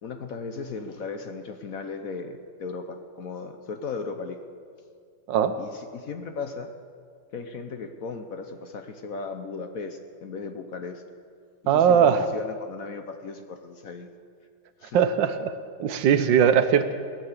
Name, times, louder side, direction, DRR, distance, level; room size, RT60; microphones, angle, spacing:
voice 1, 0.0-4.4 5.6-6.7 7.3-11.0 11.6-14.1 14.8-15.0, left 4 dB, 60° left, 6 dB, 1.0 m, -36 dB
voice 2, 11.7-12.3 14.9-15.5 15.8-16.9, right 8 dB, 80° right, 10 dB, 1.4 m, -20 dB
18.0 x 8.8 x 7.3 m, 2.2 s
omnidirectional pair, 2.0 m